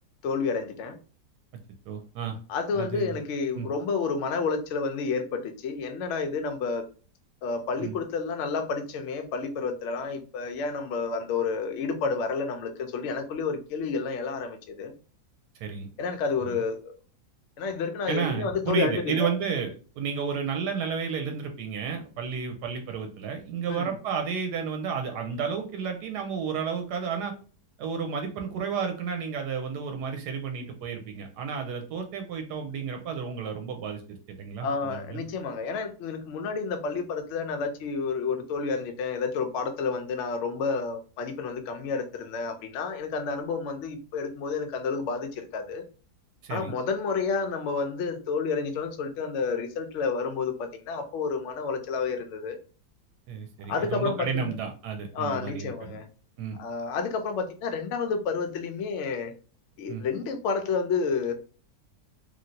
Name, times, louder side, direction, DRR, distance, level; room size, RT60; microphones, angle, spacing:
voice 1, 0.2-1.0 2.5-6.8 7.4-14.9 16.0-16.9 17.6-19.3 23.7-23.9 34.6-45.8 46.5-52.6 53.7-54.5 55.1-56.1 56.6-59.3 59.8-61.3, left 5 dB, 70° left, 0.7 m, -30 dB
voice 2, 1.9-2.4 2.7-3.2 3.5-3.7 7.8-7.9 15.6-15.9 18.1-27.3 27.8-35.2 46.4-46.8 53.3-56.0 56.4-56.6 59.9-60.0, right 6 dB, 85° right, 1.2 m, -32 dB
3.1 x 2.6 x 2.7 m
omnidirectional pair, 1.8 m